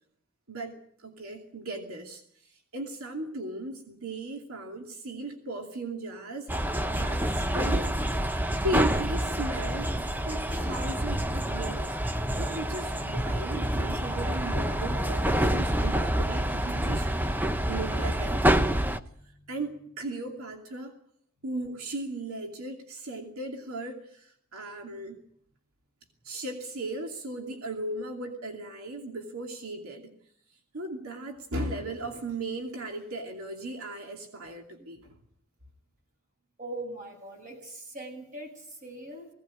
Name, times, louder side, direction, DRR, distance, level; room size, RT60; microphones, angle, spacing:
voice 1, 0.5-2.2 2.7-8.0 8.6-12.0 12.4-17.1 17.6-18.7 19.5-20.9 21.4-25.2 26.2-30.1 30.7-35.1, right 2 dB, 90° right, 2 dB, 2.7 m, -37 dB
sound 1, 6.5-19.0, right 1 dB, 10° right, 0.8 m, -27 dB
voice 2, 19.0-19.5 34.8-34.9 36.6-39.3, right 1 dB, 35° right, 2 dB, 7.9 m, -42 dB
20.5 x 17.5 x 8.6 m, 0.67 s
head